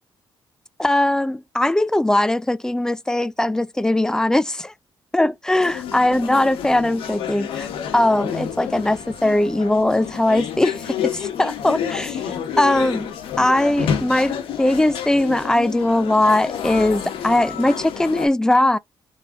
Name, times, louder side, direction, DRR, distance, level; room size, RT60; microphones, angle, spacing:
voice 1, 0.8-4.7 5.1-7.7 7.9-12.2 12.6-18.8, left 1 dB, 5° left, 0.3 m, -20 dB
sound 1, 5.6-18.3, left 8 dB, 85° left, 1.5 m, -29 dB
sound 2, 7.9-15.1, left 7 dB, 70° left, 1.1 m, -44 dB
3.7 x 3.3 x 3.6 m
cardioid pair, 85°, 9 cm